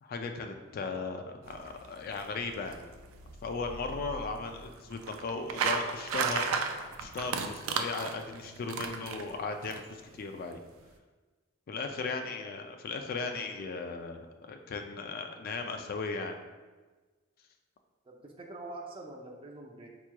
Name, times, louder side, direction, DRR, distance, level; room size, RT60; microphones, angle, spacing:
voice 1, 0.0-2.8 3.4-6.5 7.0-10.6 11.7-16.4, left 4 dB, 45° left, 5 dB, 0.3 m, -37 dB
sound 1, 1.4-9.8, right 5 dB, 85° right, 0.3 m, -35 dB
voice 2, 18.0-19.9, right 2 dB, 25° right, 0 dB, 0.4 m, -45 dB
4.5 x 3.0 x 2.2 m, 1.3 s
head